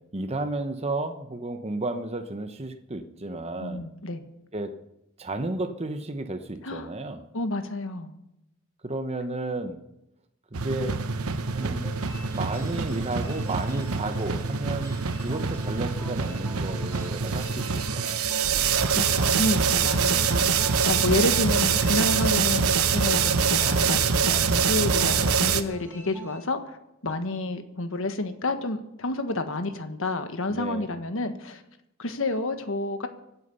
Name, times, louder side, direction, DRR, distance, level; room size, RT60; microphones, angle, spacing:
voice 1, 0.1-3.8 4.5-4.7 5.2-7.2 8.8-9.8 10.5-11.0 11.5-11.8 12.3-15.0 15.2-18.1 30.5-30.9, right 2 dB, 30° right, 7 dB, 1.0 m, -32 dB
voice 2, 3.6-4.3 6.6-6.9 7.3-8.1 18.5-26.8 27.0-31.6 32.0-33.1, left 2 dB, 65° left, 8 dB, 1.4 m, -30 dB
sound 1, 10.5-25.6, right 6 dB, 75° right, 0.9 m, -25 dB
sound 2, 11.6-26.4, right 1 dB, 10° left, 3.9 m, -44 dB
25.0 x 8.3 x 5.6 m, 0.85 s
head